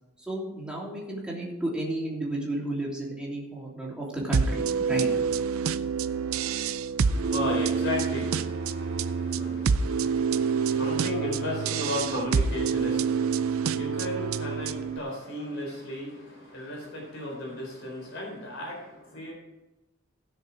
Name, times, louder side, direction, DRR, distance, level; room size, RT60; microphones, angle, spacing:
voice 1, 0.3-5.1, right 1 dB, 5° right, -4 dB, 3.0 m, -32 dB
sound 1, 4.3-15.0, right 5 dB, 80° right, 0.5 m, -27 dB
voice 2, 7.0-19.3, left 1 dB, 65° left, -2 dB, 4.2 m, -35 dB
16.5 x 6.7 x 4.8 m, 1.0 s
head